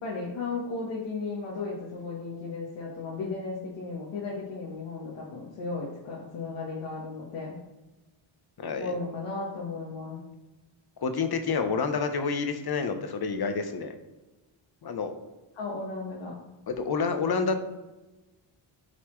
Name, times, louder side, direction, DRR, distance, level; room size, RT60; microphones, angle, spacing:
voice 1, 0.0-7.6 8.8-10.2 15.5-16.3, left 3 dB, 90° left, -5 dB, 1.5 m, -35 dB
voice 2, 8.6-9.0 11.0-13.9 14.8-15.1 16.7-17.6, left 5 dB, 50° left, 7 dB, 1.1 m, -28 dB
11.5 x 4.2 x 3.2 m, 1.1 s
cardioid pair, 75°, 48 cm